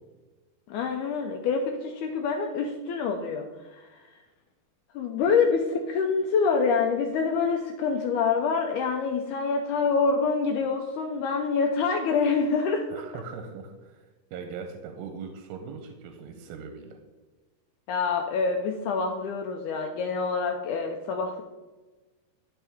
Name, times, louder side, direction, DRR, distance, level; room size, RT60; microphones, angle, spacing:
voice 1, 0.7-3.5 3.7-4.0 4.9-13.0 17.9-21.4, left 5 dB, 90° left, 3 dB, 1.7 m, -26 dB
voice 2, 12.9-17.0, right 5 dB, 90° right, 5 dB, 2.5 m, -40 dB
12.5 x 4.4 x 3.4 m, 1.2 s
omnidirectional pair, 4.2 m